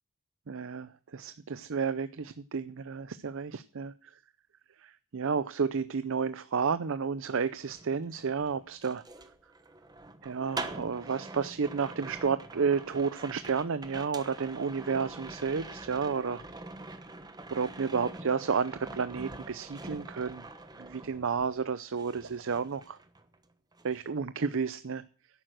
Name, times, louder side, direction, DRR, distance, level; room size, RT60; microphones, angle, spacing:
voice 1, 0.5-3.9 4.8-9.0 10.2-16.4 17.5-20.4 20.8-23.0 23.8-25.0, right 5 dB, 60° right, 0.6 m, -31 dB
sound 1, 7.5-21.7 22.0-23.4 23.7-24.1, right 2 dB, 20° right, 1.1 m, -45 dB
11.5 x 8.9 x 7.7 m
head